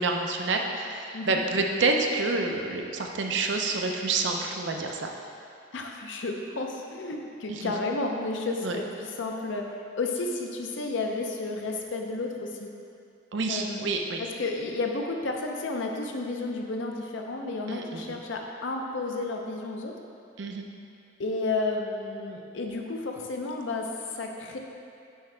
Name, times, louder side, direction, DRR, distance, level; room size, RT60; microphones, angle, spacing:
voice 1, 0.0-5.1 7.5-7.7 8.6-8.8 13.3-14.2 17.7-18.2 20.4-20.6, right 3 dB, 65° right, 2 dB, 0.6 m, -28 dB
voice 2, 5.7-9.7 10.0-12.7 13.5-13.9 14.2-19.9 21.2-24.6, left 3 dB, 70° left, 2 dB, 0.6 m, -32 dB
7.8 x 4.7 x 3.3 m, 2.5 s
head